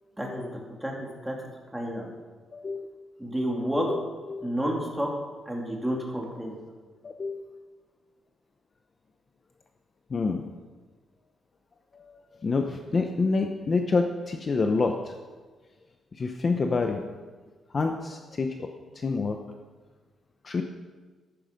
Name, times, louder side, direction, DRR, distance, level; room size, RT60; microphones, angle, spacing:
voice 1, 0.2-1.3 1.7-2.1 3.2-4.0 4.4-5.1 5.5-6.5, equal, 5° right, -1 dB, 2.6 m, -30 dB
voice 2, 2.5-2.9 3.8-4.0 4.3-4.5 7.0-7.5 10.1-10.4 11.9-15.1 16.1-17.1 17.7-18.7 18.9-19.4 20.4-20.6, left 4 dB, 30° left, 4 dB, 0.8 m, -28 dB
13.5 x 11.5 x 5.2 m, 1.4 s
cardioid pair, 155°, 0 cm